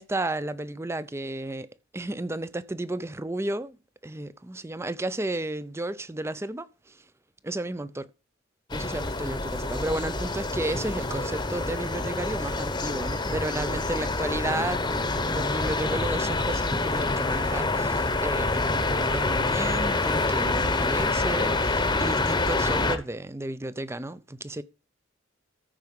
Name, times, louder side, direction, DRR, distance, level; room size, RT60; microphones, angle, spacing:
voice 1, 0.0-1.7 1.9-3.8 4.0-7.0 7.4-8.1 8.7-24.6, right 1 dB, 15° right, 0.5 m, -33 dB
sound 1, 8.7-23.0, left 2 dB, 20° left, 0.9 m, -27 dB
14.0 x 4.7 x 5.4 m
head